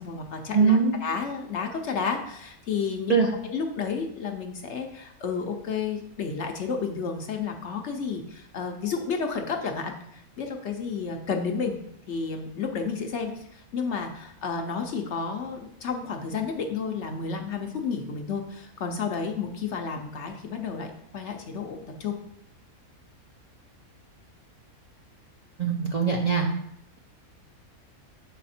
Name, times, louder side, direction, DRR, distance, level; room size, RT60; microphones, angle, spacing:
voice 1, 0.0-11.8 12.1-22.2, left 5 dB, 60° left, 4 dB, 0.9 m, -31 dB
voice 2, 0.5-0.9 3.1-3.3 25.6-26.5, right 5 dB, 45° right, -2 dB, 0.5 m, -21 dB
6.7 x 4.1 x 4.2 m, 0.74 s
omnidirectional pair, 1.5 m